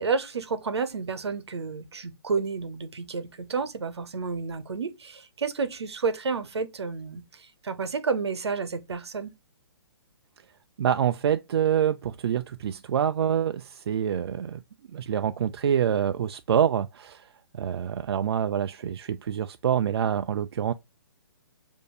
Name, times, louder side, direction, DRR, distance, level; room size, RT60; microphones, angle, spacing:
voice 1, 0.0-9.3, right 5 dB, 90° right, 0.8 m, -30 dB
voice 2, 10.8-14.6 14.9-17.2 17.6-20.7, right 9 dB, 70° right, 0.4 m, -26 dB
6.5 x 2.6 x 2.3 m
hypercardioid pair, 155°, 14 cm